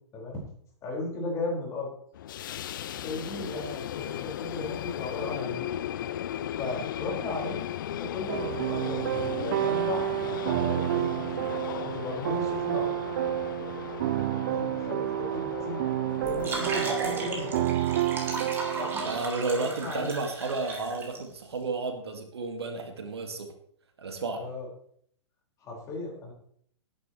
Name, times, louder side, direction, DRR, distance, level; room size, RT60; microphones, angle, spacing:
voice 1, 0.8-1.9 2.9-5.7 6.6-11.5 11.8-12.9 14.4-15.8 16.2-17.7 18.8-19.1 19.4-20.1 24.3-24.7 25.6-26.3, left 2 dB, 20° left, -2 dB, 5.2 m, -36 dB
sound 1, 2.1-17.7, left 11 dB, 45° left, 0.5 m, -37 dB
sound 2, 8.3-19.2, right 13 dB, 40° right, 0.4 m, -30 dB
sound 3, 16.2-21.2, right 3 dB, 15° right, 3.3 m, -35 dB
voice 2, 19.0-23.5 24.0-24.5, right 3 dB, 60° right, 5 dB, 2.1 m, -32 dB
19.0 x 9.8 x 3.2 m, 0.64 s
figure-of-eight pair, 110°, 15 cm